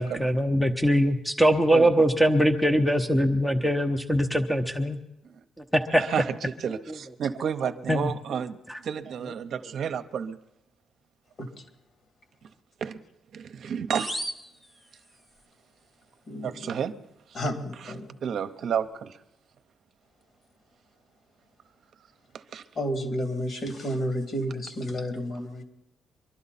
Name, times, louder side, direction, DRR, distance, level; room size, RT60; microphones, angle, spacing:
voice 1, 0.0-5.0 5.7-6.0 7.9-8.1 8.7-8.8, equal, ahead, 6 dB, 0.8 m, -22 dB
voice 2, 5.9-6.3 6.6-8.6 8.8-10.4 12.8-13.0 13.3-14.1 16.4-16.9 17.3-17.4 18.2-19.2 22.3-22.6, right 7 dB, 65° right, 9 dB, 0.8 m, -31 dB
sound 1, 13.9-15.4, equal, 25° left, 1.3 m, -37 dB
voice 3, 16.3-16.7 17.3-18.1 22.7-25.6, equal, 50° left, 4 dB, 2.7 m, -31 dB
24.0 x 11.5 x 4.2 m, 0.89 s
cardioid pair, 90°, 0 cm